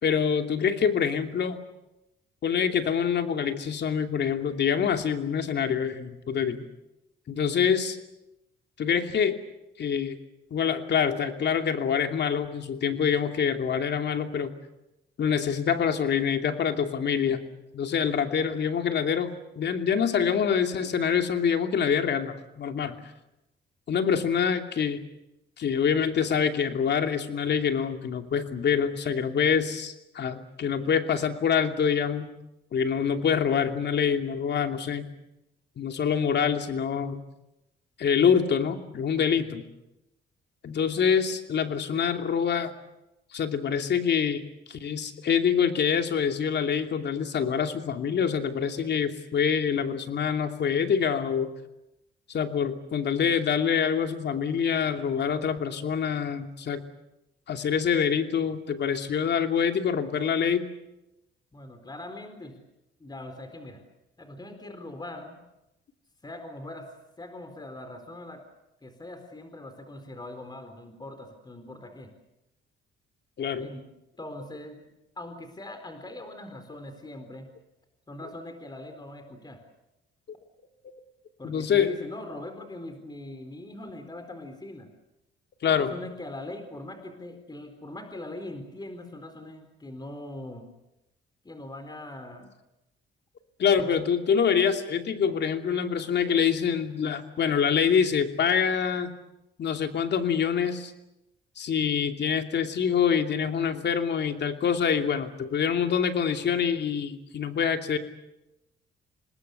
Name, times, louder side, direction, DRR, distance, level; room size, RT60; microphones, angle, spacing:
voice 1, 0.0-1.6 2.4-6.6 7.3-8.0 8.8-9.4 9.8-10.2 10.5-14.5 15.2-17.4 17.7-23.0 23.9-25.0 25.6-32.3 32.7-35.1 35.8-37.2 38.0-39.6 40.6-42.7 43.3-51.5 52.3-56.8 57.5-60.7 73.4-73.7 80.8-80.9 81.4-81.9 85.6-85.9 93.6-99.1 99.6-100.9 101.6-108.0, left 7 dB, 60° left, 5 dB, 2.8 m, -25 dB
voice 2, 61.5-62.6 63.0-63.8 64.2-65.4 66.2-66.9 67.2-68.4 68.8-72.1 73.6-73.9 74.2-74.9 75.2-77.5 78.1-79.6 81.4-84.9 85.6-90.7 91.4-92.5 93.7-94.0, left 1 dB, 20° left, 7 dB, 4.1 m, -41 dB
27.0 x 20.0 x 8.3 m, 0.93 s
cardioid pair, 90°, 20 cm